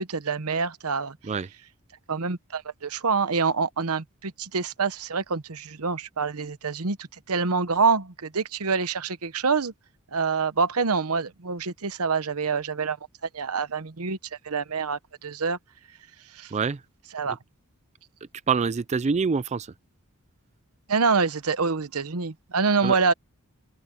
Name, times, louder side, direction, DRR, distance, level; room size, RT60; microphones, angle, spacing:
voice 1, 0.0-1.2 2.1-9.7 10.1-13.0 13.3-14.2 14.4-15.6 16.3-16.5 17.1-17.4 20.9-23.1, right 5 dB, 80° right, 1.0 m, -26 dB
voice 2, 18.5-19.7 22.8-23.0, right 5 dB, 30° right, 0.4 m, -25 dB
open air
head